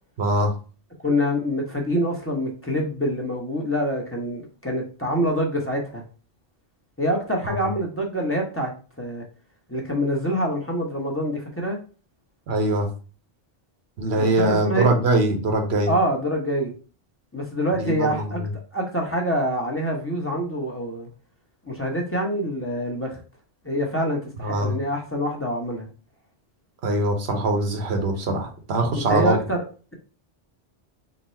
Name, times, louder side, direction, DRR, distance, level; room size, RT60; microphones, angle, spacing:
voice 1, 0.2-0.5 7.4-7.6 12.5-12.9 14.0-15.9 17.8-18.5 24.4-24.8 26.8-29.4, right 2 dB, 75° right, 3 dB, 1.1 m, -22 dB
voice 2, 1.0-6.0 7.0-8.7 9.0-9.2 9.7-11.8 14.1-14.9 15.9-16.7 17.3-18.4 18.7-21.1 21.6-23.2 23.6-25.9 28.9-29.6, equal, 15° left, -1 dB, 0.8 m, -25 dB
3.9 x 2.2 x 4.2 m, 0.37 s
omnidirectional pair, 1.1 m